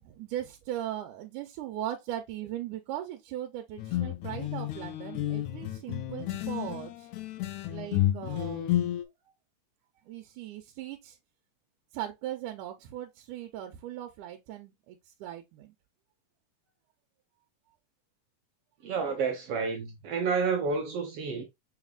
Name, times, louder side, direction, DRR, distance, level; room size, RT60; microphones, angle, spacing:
voice 1, 0.0-7.1 7.7-9.0 10.1-11.2 11.9-15.7, right 12 dB, 90° right, 2.2 m, -39 dB
sound 1, 3.8-9.0, left 13 dB, 80° left, 1.9 m, -31 dB
voice 2, 18.8-21.4, right 5 dB, 70° right, 1.5 m, -30 dB
5.8 x 4.0 x 2.2 m
omnidirectional pair, 3.5 m